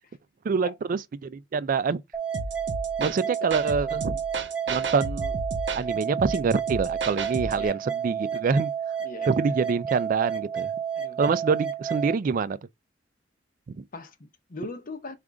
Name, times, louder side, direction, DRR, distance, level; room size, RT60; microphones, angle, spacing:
voice 1, 0.4-2.0 3.0-4.1 4.7-5.3 5.8-8.7 9.3-10.7 11.2-12.6 13.8-13.9, right 5 dB, 45° right, 0.3 m, -26 dB
sound 1, 2.1-12.1, right 8 dB, 5° right, 0.6 m, -31 dB
sound 2, 2.3-7.7, right 2 dB, 70° right, 0.8 m, -33 dB
voice 2, 9.0-9.5 11.0-11.2 13.9-15.2, left 2 dB, 45° left, 0.7 m, -40 dB
4.9 x 2.5 x 3.3 m
head